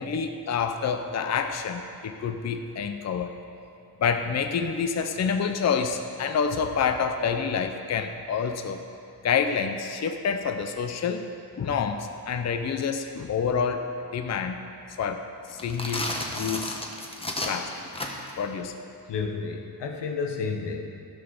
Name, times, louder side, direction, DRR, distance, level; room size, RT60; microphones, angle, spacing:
voice 1, 0.0-3.3 4.0-8.8 9.2-11.3 11.6-14.6 15.0-15.2 15.5-16.8 17.4-17.7 18.4-18.7, left 6 dB, 40° left, 6 dB, 0.6 m, -28 dB
sound 1, 15.5-18.4, left 1 dB, 15° left, 1.1 m, -32 dB
voice 2, 19.1-20.8, left 5 dB, 90° left, 3 dB, 1.3 m, -31 dB
15.0 x 6.0 x 6.5 m, 2.6 s
wide cardioid pair, 150°, 40 cm